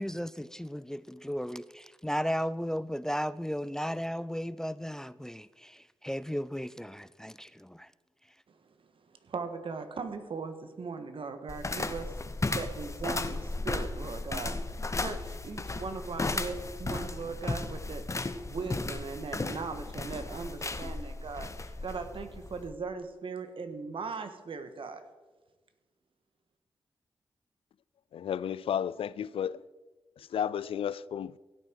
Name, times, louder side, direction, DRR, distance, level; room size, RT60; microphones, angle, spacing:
voice 1, 0.0-7.9, equal, 5° left, 0.5 m, -35 dB
voice 2, 9.0-12.1 12.5-14.6 14.9-18.0 18.4-25.0, right 4 dB, 65° right, 1.4 m, -39 dB
sound 1, 11.5-22.7, left 2 dB, 30° left, 1.1 m, -35 dB
voice 3, 28.1-29.6 30.2-31.4, left 9 dB, 75° left, 0.3 m, -33 dB
16.0 x 8.7 x 4.6 m
cardioid pair, 45°, 10 cm